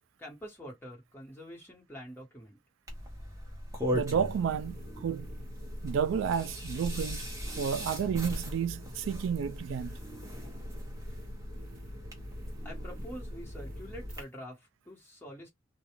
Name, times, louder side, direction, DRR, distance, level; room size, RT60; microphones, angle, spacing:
voice 1, 0.2-2.6 12.6-15.5, equal, 10° left, 1.3 m, -46 dB
sound 1, 2.9-14.2, equal, 15° right, 0.9 m, -39 dB
voice 2, 3.9-5.3 5.8-10.0, right 7 dB, 70° right, 0.3 m, -31 dB
sound 2, 4.2-14.2, left 1 dB, 45° right, 0.9 m, -48 dB
2.4 x 2.3 x 2.9 m
head